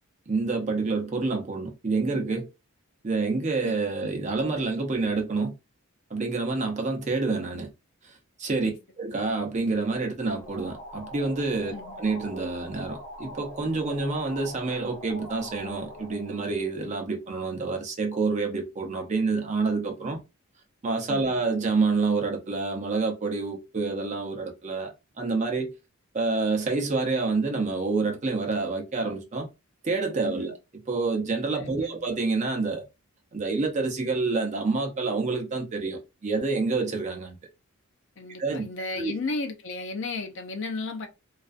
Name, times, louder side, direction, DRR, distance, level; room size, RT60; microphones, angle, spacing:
voice 1, 0.3-2.5 3.0-5.5 6.1-7.7 8.4-8.7 9.0-20.2 20.8-25.7 26.1-29.5 29.8-30.6 30.9-32.8 33.3-37.4 38.4-38.7 39.0-39.1, right 3 dB, 30° right, 0.5 m, -28 dB
sound 1, 10.2-17.6, equal, 80° left, 0.9 m, -43 dB
voice 2, 21.1-21.4 30.2-30.5 31.5-32.1 38.2-41.1, left 3 dB, 55° left, 0.4 m, -34 dB
2.4 x 2.2 x 2.4 m
head